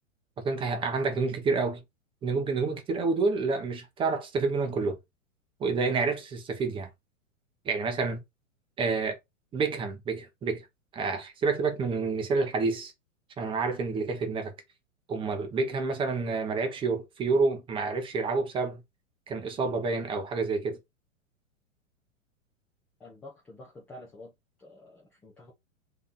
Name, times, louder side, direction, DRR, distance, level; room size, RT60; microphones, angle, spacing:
voice 1, 0.4-1.8 2.2-5.0 5.6-6.9 7.6-8.2 8.8-9.2 9.5-10.6 10.9-12.9 13.4-14.5 15.1-18.8 19.3-20.8, right 4 dB, 15° right, 0.8 m, -28 dB
voice 2, 23.0-24.3 24.6-25.5, left 2 dB, 5° left, 0.4 m, -48 dB
3.6 x 2.9 x 3.7 m
figure-of-eight pair, 105°, 40 cm